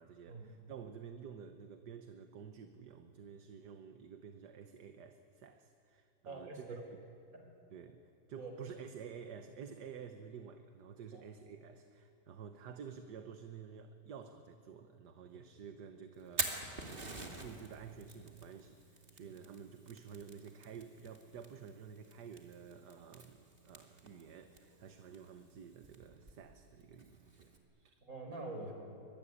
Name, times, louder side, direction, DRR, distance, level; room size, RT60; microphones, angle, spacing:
voice 1, 0.0-6.8 7.7-8.0 8.3-16.8 17.1-27.9, right 7 dB, 70° right, 8 dB, 1.6 m, -51 dB
voice 2, 6.2-6.8 7.3-7.5 8.4-8.5 11.1-11.3 19.2-19.3 28.0-28.7, right 2 dB, 50° right, 3 dB, 5.0 m, -45 dB
Fire, 16.1-27.6, right 2 dB, 30° right, 2.7 m, -47 dB
24.0 x 23.0 x 9.9 m, 2.5 s
omnidirectional pair, 1.9 m